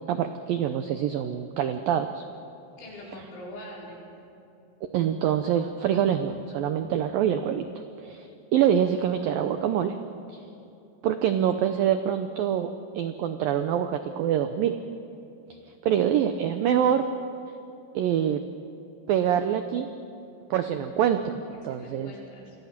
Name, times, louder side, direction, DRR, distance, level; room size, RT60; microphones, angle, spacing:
voice 1, 0.1-2.2 4.9-7.6 8.0-10.0 10.3-10.4 11.0-14.7 15.8-17.0 18.0-18.4 19.1-19.9 20.5-21.3 21.6-22.1, right 9 dB, 90° right, 8 dB, 2.0 m, -25 dB
voice 2, 2.8-4.0 21.5-22.6, left 1 dB, 80° left, -4 dB, 7.4 m, -43 dB
28.5 x 22.5 x 5.9 m, 2.8 s
omnidirectional pair, 5.3 m